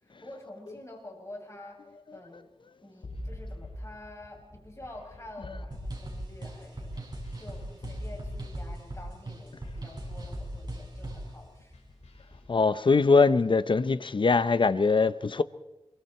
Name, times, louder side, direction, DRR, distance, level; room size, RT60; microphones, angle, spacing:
voice 1, 0.0-1.8 2.1-2.5 2.8-11.7, left 1 dB, 25° left, 7.5 m, -48 dB
sound 1, 3.0-12.6, left 1 dB, 85° left, 5.6 m, -43 dB
sound 2, 5.7-11.3, right 1 dB, 40° right, 6.1 m, -40 dB
voice 2, 12.5-15.4, left 4 dB, 50° left, 0.8 m, -22 dB
26.5 x 23.5 x 4.4 m
wide cardioid pair, 65°, 11 cm